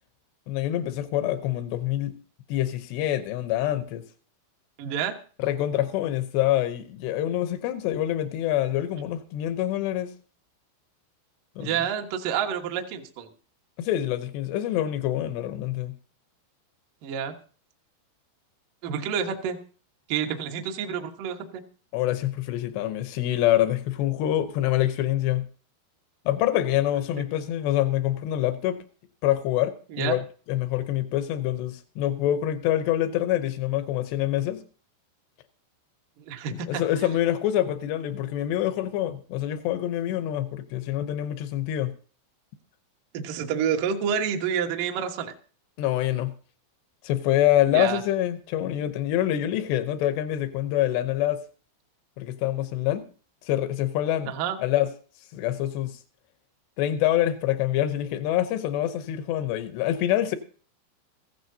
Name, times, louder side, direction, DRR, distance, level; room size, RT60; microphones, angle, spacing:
voice 1, 0.5-2.2 2.5-4.0 5.4-10.1 11.6-11.8 13.8-15.9 21.9-25.5 26.3-28.8 29.2-30.2 30.5-34.6 36.5-41.9 45.8-46.3 47.0-51.4 52.2-53.0 53.4-54.3 54.6-54.9 55.3-56.0 56.8-60.4, left 12 dB, 85° left, 2.4 m, -26 dB
voice 2, 4.8-5.1 11.6-13.3 17.0-17.3 18.8-19.6 20.1-21.6 29.9-30.2 36.3-37.2 43.1-45.3 47.7-48.0 54.3-54.6, right 8 dB, 70° right, 2.0 m, -28 dB
15.5 x 15.5 x 2.7 m
omnidirectional pair, 6.0 m